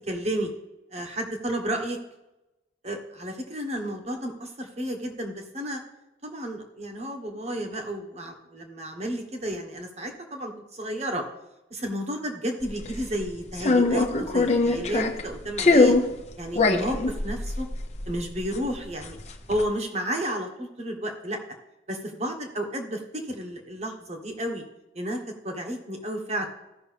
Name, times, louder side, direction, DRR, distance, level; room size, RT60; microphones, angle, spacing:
voice 1, 0.1-0.5 0.9-2.0 2.8-5.8 6.2-11.2 11.7-15.9 16.4-17.7 18.1-19.2 19.5-21.4 21.9-24.6 24.9-26.5, equal, 40° right, 3 dB, 1.4 m, -32 dB
sound 1, 12.7-13.1 13.6-15.3 15.6-16.1 16.5-18.8 19.0-19.6, left 3 dB, 40° left, 0.8 m, -22 dB
14.5 x 6.0 x 3.5 m, 0.96 s
head